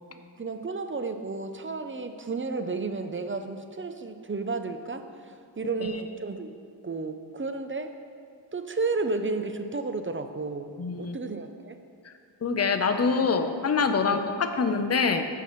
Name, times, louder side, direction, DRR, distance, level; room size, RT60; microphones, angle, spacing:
voice 1, 0.1-6.6 6.8-7.9 8.5-11.8 14.1-14.2, right 3 dB, 30° right, 8 dB, 0.5 m, -32 dB
voice 2, 10.8-11.2 12.0-12.1 12.4-15.2, left 5 dB, 35° left, 7 dB, 0.6 m, -25 dB
13.5 x 5.7 x 3.1 m, 2.2 s
wide cardioid pair, 70°, 45 cm